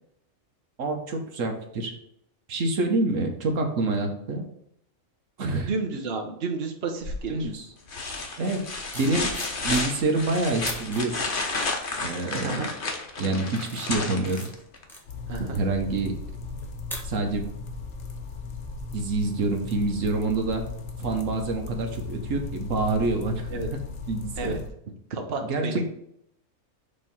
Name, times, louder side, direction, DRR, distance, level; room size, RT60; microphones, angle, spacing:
voice 1, 0.8-1.9 2.5-4.4 5.4-5.7 7.3-7.7 8.4-8.7 8.9-9.3 9.6-11.2 12.0-12.6 13.2-14.5 15.5-16.2 17.0-17.4 18.9-20.6 21.0-23.8 24.1-24.6 25.5-25.9, right 3 dB, 70° right, 4 dB, 1.3 m, -27 dB
voice 2, 5.7-7.5 12.3-12.7 15.3-15.6 23.5-23.7 24.4-24.6 25.1-25.9, right 4 dB, 50° right, 3 dB, 1.1 m, -31 dB
sound 1, 7.0-7.4 7.9-14.8 16.6-16.7, left 3 dB, 45° left, 1.1 m, -31 dB
sound 2, 8.7-10.2 10.6-11.0 11.6-12.0 12.5-12.8 13.3-17.6 17.9-18.1, equal, ahead, 1.1 m, -42 dB
sound 3, 15.1-24.7, left 4 dB, 75° left, 1.3 m, -37 dB
6.8 x 3.3 x 5.4 m, 0.74 s
omnidirectional pair, 1.4 m